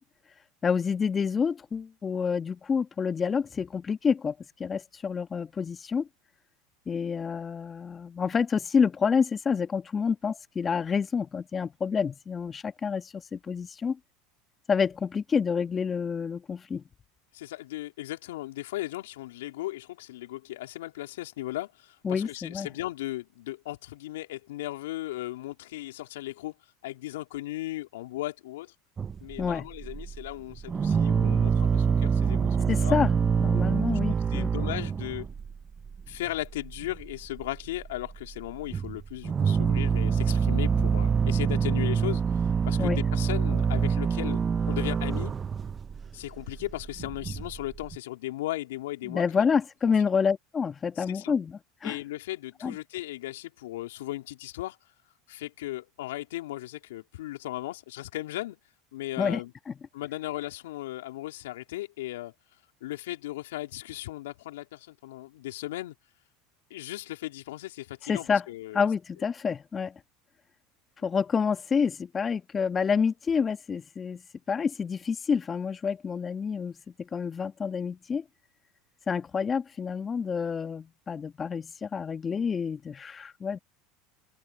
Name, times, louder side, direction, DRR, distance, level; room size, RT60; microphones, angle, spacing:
voice 1, 0.6-6.1 6.9-14.0 14.7-16.8 22.0-22.7 29.4-29.7 32.7-33.1 33.4-34.5 42.8-43.0 49.1-52.0 52.6-52.8 59.2-59.4 68.1-68.4 68.7-69.9 71.0-74.2 74.5-78.2 79.1-83.6, left 6 dB, 25° left, 1.7 m, -28 dB
voice 2, 17.3-26.5 26.8-28.7 29.2-33.0 33.9-35.3 36.1-44.4 44.7-45.3 46.1-49.4 51.0-51.4 51.8-54.8 55.3-58.6 58.9-59.5 59.9-62.3 62.8-65.9 66.7-68.9 71.0-71.1, left 16 dB, 80° left, 3.9 m, -37 dB
sound 1, 29.0-30.3 30.6-35.6 35.8-36.3 36.6-37.1 37.4-38.1 38.4-48.0, right 6 dB, 25° right, 1.3 m, -26 dB
hypercardioid pair, 90°, 0 cm